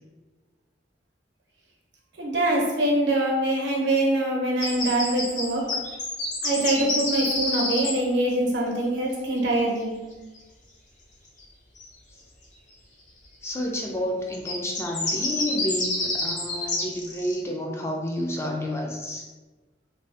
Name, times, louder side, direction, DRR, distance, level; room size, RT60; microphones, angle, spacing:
voice 1, 2.2-5.7 6.4-10.0, right 1 dB, 85° right, -1 dB, 0.8 m, -24 dB
sound 1, 4.6-7.9 11.8-11.9 14.3-17.4, left 2 dB, 45° left, 0.7 m, -28 dB
voice 2, 13.4-19.3, left 1 dB, 15° left, 0 dB, 0.3 m, -30 dB
3.2 x 2.7 x 2.6 m, 1.2 s
head